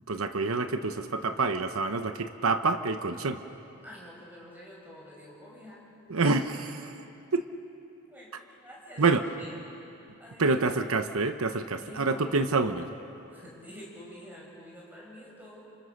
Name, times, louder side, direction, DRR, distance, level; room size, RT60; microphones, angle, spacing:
voice 1, 0.1-3.4 6.1-6.9 7.3-7.4 9.0-9.2 10.4-12.9, right 3 dB, 80° right, 8 dB, 1.0 m, -27 dB
voice 2, 3.8-5.8 8.1-9.6 10.2-10.6 11.8-12.5 13.3-15.6, equal, 10° right, -3 dB, 6.0 m, -48 dB
29.5 x 27.0 x 6.6 m, 2.7 s
head